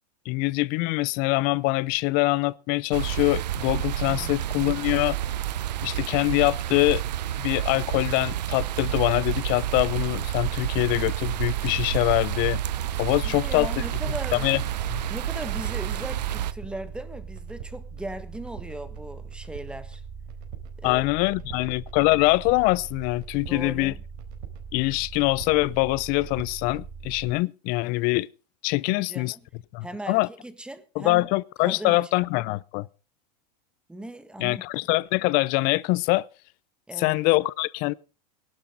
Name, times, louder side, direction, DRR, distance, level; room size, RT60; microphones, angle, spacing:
voice 1, 0.3-5.2 5.8-7.0 7.4-12.6 13.0-13.7 14.3-14.6 14.9-15.0 20.8-23.9 24.7-28.3 28.6-29.3 29.7-30.3 31.0-32.9 34.4-36.3 37.0-37.9, left 21 dB, 45° left, 0.6 m, -24 dB
sound 1, 2.9-16.5, right 12 dB, 90° right, 0.8 m, -29 dB
voice 2, 4.0-4.4 13.2-14.4 15.1-20.0 20.8-21.1 21.5-21.7 23.5-24.0 28.9-29.4 29.8-31.3 31.6-32.1 33.9-34.6 36.9-37.2, right 1 dB, 5° right, 1.5 m, -38 dB
sound 2, 9.6-27.3, right 6 dB, 65° right, 4.2 m, -40 dB
19.0 x 12.0 x 4.0 m
supercardioid pair, 130°, 21 cm